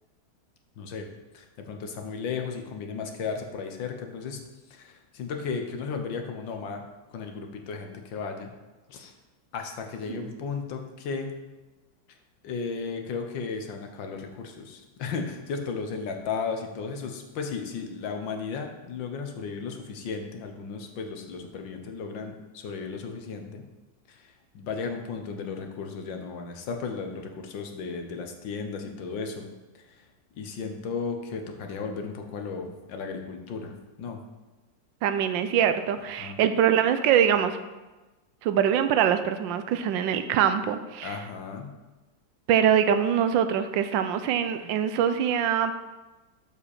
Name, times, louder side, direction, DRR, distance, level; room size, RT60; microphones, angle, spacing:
voice 1, 0.8-1.1 1.3-4.4 4.7-6.8 7.1-8.5 8.9-9.1 9.5-11.3 12.4-23.6 24.1-29.5 29.9-30.0 30.4-33.7 34.0-34.2 36.2-36.4 41.0-41.7, left 5 dB, 85° left, 4 dB, 1.7 m, -35 dB
voice 2, 35.0-37.6 38.4-41.2 42.5-45.8, right 9 dB, 85° right, 10 dB, 1.3 m, -23 dB
7.3 x 5.0 x 6.5 m, 1.1 s
omnidirectional pair, 2.0 m